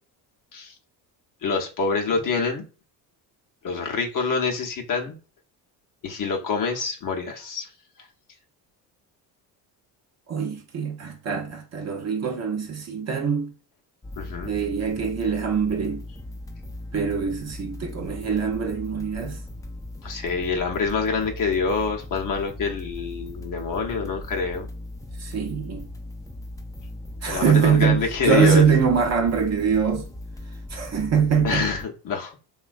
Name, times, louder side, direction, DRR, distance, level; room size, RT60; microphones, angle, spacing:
voice 1, 1.4-2.6 3.6-5.1 6.0-7.7 14.1-14.6 20.0-24.7 27.3-28.6 31.4-32.3, left 4 dB, 40° left, 0.7 m, -26 dB
voice 2, 10.3-13.5 14.5-16.0 16.9-19.4 25.2-25.9 27.2-30.1 30.7-31.7, right 6 dB, 35° right, 0.6 m, -23 dB
sound 1, 14.0-31.9, left 1 dB, 10° left, 0.4 m, -38 dB
3.0 x 2.3 x 2.4 m
hypercardioid pair, 65°, 48 cm